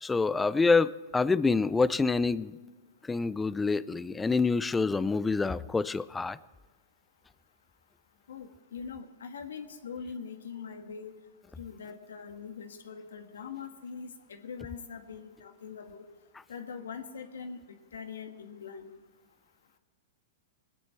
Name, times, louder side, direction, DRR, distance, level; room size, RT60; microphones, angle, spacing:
voice 1, 0.0-2.5 3.1-6.4, left 4 dB, 10° left, 17 dB, 0.4 m, -26 dB
voice 2, 8.3-11.1 11.6-16.0 16.5-18.9, left 6 dB, 90° left, 7 dB, 1.5 m, -42 dB
19.0 x 10.0 x 4.5 m, 1.4 s
hypercardioid pair, 130°, 0 cm